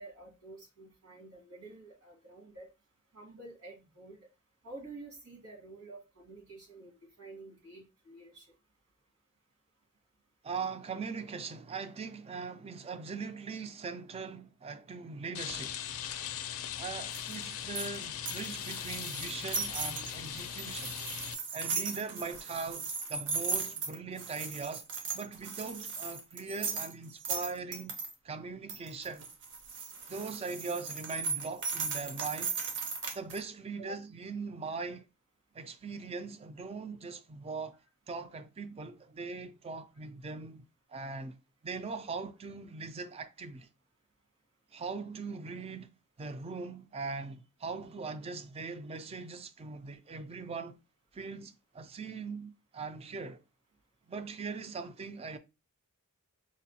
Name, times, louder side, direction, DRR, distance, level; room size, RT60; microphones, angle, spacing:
voice 1, 0.0-2.7 3.1-4.2 4.6-8.5 33.8-34.0, right 2 dB, 75° right, 1.9 m, -49 dB
voice 2, 10.4-15.8 16.8-21.0 21.5-24.9 25.1-28.0 28.2-29.3 30.1-32.6 33.1-35.0 35.5-37.8 38.1-41.4 41.6-43.7 44.7-45.9 46.2-50.8 51.1-53.4 54.1-55.4, right 4 dB, 25° right, 0.3 m, -40 dB
Rain, 15.3-21.3, left 9 dB, 70° left, 0.4 m, -39 dB
sound 1, 17.1-28.1 28.7-33.4, right 4 dB, 55° right, 0.7 m, -37 dB
4.9 x 2.2 x 2.7 m
head